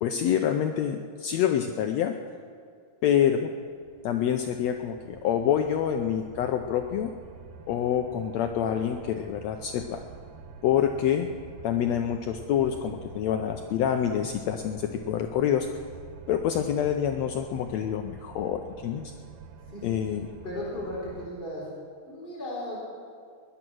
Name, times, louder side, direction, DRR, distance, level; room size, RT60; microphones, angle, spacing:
voice 1, 0.0-2.2 3.0-3.5 4.0-7.1 7.7-10.0 10.6-11.3 11.6-15.7 16.3-19.0 19.8-20.3, left 9 dB, 75° left, 5 dB, 1.7 m, -26 dB
sound 1, 3.6-21.3, right 5 dB, 70° right, 2.1 m, -47 dB
voice 2, 19.7-21.6 22.0-22.8, left 1 dB, 15° left, -6 dB, 4.3 m, -36 dB
20.0 x 11.0 x 6.2 m, 2.2 s
omnidirectional pair, 3.6 m